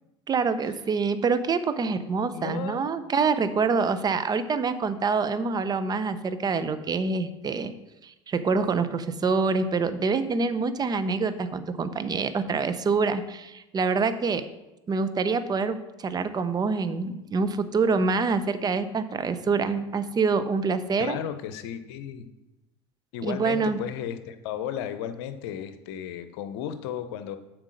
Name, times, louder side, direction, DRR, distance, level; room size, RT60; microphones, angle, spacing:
voice 1, 0.3-7.7 8.0-14.4 14.9-21.2 23.2-23.8, right 4 dB, 30° right, 12 dB, 0.7 m, -26 dB
voice 2, 2.3-2.8 21.0-22.3 23.1-27.4, left 9 dB, 70° left, 11 dB, 0.7 m, -34 dB
7.5 x 4.7 x 6.3 m, 0.99 s
hypercardioid pair, 75°, 14 cm